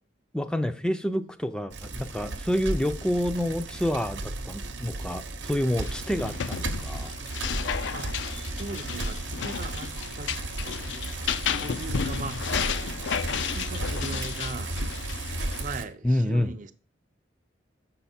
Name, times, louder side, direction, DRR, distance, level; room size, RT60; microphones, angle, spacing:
voice 1, 0.3-7.1 16.0-16.5, left 1 dB, 5° left, 0.4 m, -28 dB
Bicycle, 1.7-15.8, right 2 dB, 75° right, 0.9 m, -34 dB
sound 1, 5.8-15.6, left 7 dB, 75° left, 0.4 m, -33 dB
voice 2, 8.4-10.4 10.9-11.1 11.6-12.9 13.2-14.8 15.6-16.7, right 3 dB, 45° right, 0.6 m, -39 dB
7.2 x 5.8 x 4.3 m
head